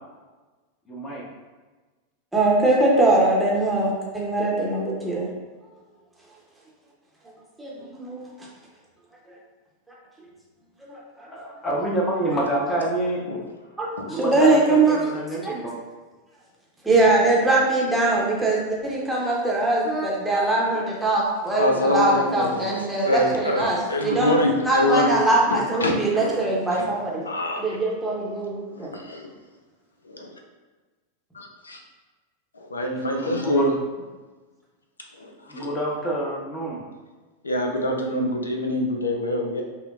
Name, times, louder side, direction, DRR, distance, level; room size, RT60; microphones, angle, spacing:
voice 1, 0.9-1.2 11.2-13.2 14.1-15.8 33.1-33.7 35.5-36.8, right 1 dB, 20° left, -3 dB, 0.9 m, -27 dB
voice 2, 2.3-5.3 7.6-8.3 10.9-11.3 13.8-15.0 15.4-15.5 16.8-24.4 24.6-27.3 27.6-28.9 33.1-33.2, right 2 dB, 5° right, -4 dB, 0.9 m, -22 dB
voice 3, 21.6-22.7 23.0-25.1 25.5-26.4 26.7-26.9 27.3-27.8 28.7-29.3 30.0-30.3 31.3-31.8 32.7-33.7 35.2-35.7 37.4-39.6, left 1 dB, 75° left, 2 dB, 0.5 m, -25 dB
5.6 x 2.1 x 2.4 m, 1.3 s
figure-of-eight pair, 90°, 0 cm